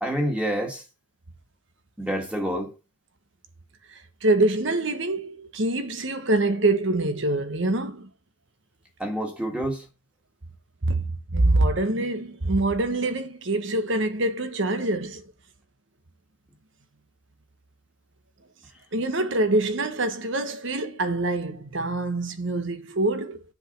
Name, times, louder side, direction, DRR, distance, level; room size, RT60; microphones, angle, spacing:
voice 1, 0.0-0.8 2.0-2.7 9.0-9.9, equal, 5° right, 1.9 m, -27 dB
voice 2, 4.2-8.1 10.8-11.0 11.3-15.2 18.9-23.4, right 2 dB, 65° right, 1.2 m, -25 dB
7.4 x 5.1 x 6.7 m
head